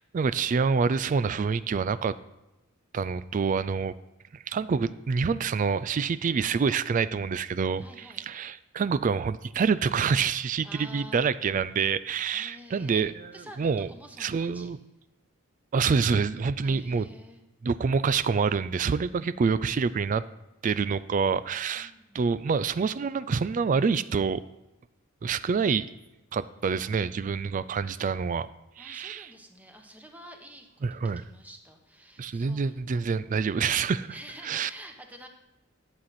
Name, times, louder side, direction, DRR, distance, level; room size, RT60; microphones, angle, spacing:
voice 1, 0.1-2.2 2.9-3.9 4.5-7.8 8.3-13.1 13.6-13.9 14.2-14.8 15.7-17.1 17.6-20.2 20.6-24.4 25.2-25.9 26.3-28.5 28.8-29.3 30.8-31.2 32.2-34.1 34.5-34.7, right 5 dB, 40° right, 16 dB, 0.3 m, -26 dB
voice 2, 7.8-8.3 10.6-11.2 12.3-13.1 13.3-14.7 16.6-17.4 21.8-22.2 28.8-32.8 33.5-35.3, equal, 10° right, 3 dB, 1.1 m, -49 dB
11.5 x 7.7 x 4.1 m, 0.96 s
head